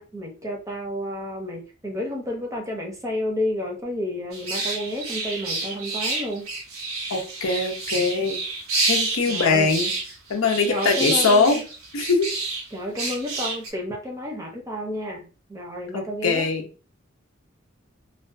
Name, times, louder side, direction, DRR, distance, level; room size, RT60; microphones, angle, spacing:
voice 1, 0.0-6.5 9.3-9.7 10.7-11.6 12.7-16.5, left 1 dB, 15° right, 0 dB, 0.6 m, -31 dB
sound 1, 4.3-12.6 13.0-13.7, right 3 dB, 85° right, 0.7 m, -29 dB
voice 2, 7.1-8.4 8.8-9.9 10.3-11.6 11.9-12.3 15.9-16.6, left 4 dB, 75° left, 3 dB, 0.6 m, -22 dB
2.4 x 2.2 x 2.5 m, 0.36 s
head